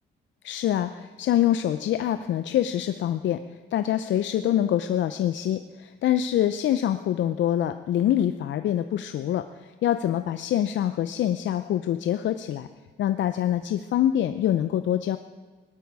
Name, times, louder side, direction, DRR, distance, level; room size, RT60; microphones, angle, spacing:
voice 1, 0.4-3.4 3.7-9.4 9.8-12.7 13.0-15.2, left 11 dB, 70° left, 10 dB, 0.6 m, -25 dB
18.5 x 12.0 x 4.8 m, 1.4 s
cardioid pair, 90°, 20 cm